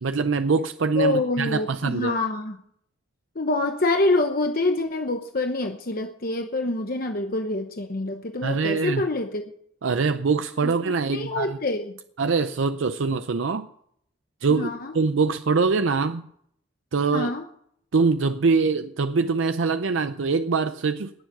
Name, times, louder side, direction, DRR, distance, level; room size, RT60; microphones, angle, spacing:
voice 1, 0.0-2.2 8.4-9.0 9.8-11.6 12.2-13.7 14.4-16.2 16.9-17.3 17.9-21.1, right 4 dB, 85° right, 0.6 m, -23 dB
voice 2, 0.9-2.6 3.3-9.4 10.6-10.7 11.1-12.0 14.5-14.9 17.1-17.5, left 2 dB, 50° left, 0.9 m, -26 dB
19.5 x 7.2 x 6.1 m
head